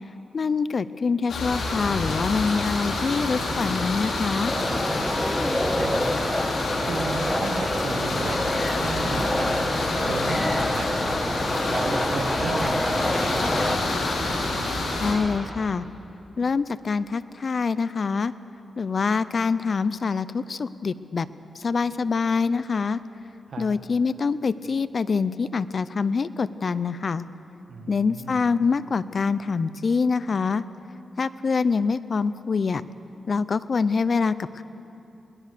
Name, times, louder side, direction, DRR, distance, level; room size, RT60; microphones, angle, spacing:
voice 1, 0.3-4.5 15.0-15.9 16.4-18.3 18.8-21.3 21.6-23.0 23.6-27.3 27.9-30.6 31.2-32.8 33.3-34.6, left 5 dB, 55° left, 16 dB, 0.6 m, -25 dB
sound 1, 1.3-15.1, left 2 dB, 90° left, 4.5 m, -28 dB
sound 2, 4.5-13.8, left 1 dB, 10° left, 1.6 m, -27 dB
voice 2, 6.9-9.5 10.0-11.1 11.7-13.4 23.5-23.7 27.7-28.4, right 4 dB, 75° right, 5 dB, 1.9 m, -34 dB
23.0 x 20.5 x 6.8 m, 2.8 s
cardioid pair, 70°, 0 cm